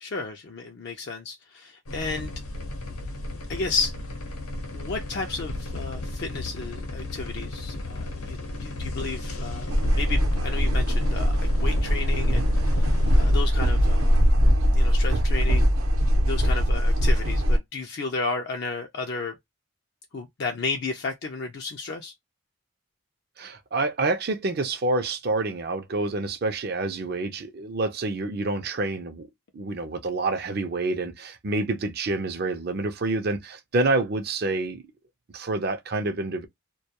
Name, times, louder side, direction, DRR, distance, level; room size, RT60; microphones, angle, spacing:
voice 1, 0.0-2.3 3.5-3.9 4.7-14.2 14.7-15.7 16.2-19.4 20.1-22.1, left 4 dB, 50° left, 0.4 m, -33 dB
sound 1, 1.9-13.3, left 2 dB, 90° left, 0.8 m, -34 dB
sound 2, 9.7-17.6, equal, 80° right, 0.7 m, -21 dB
voice 2, 23.4-29.3 29.5-34.8 35.3-36.5, right 2 dB, 45° right, 0.5 m, -27 dB
2.2 x 2.2 x 2.7 m
head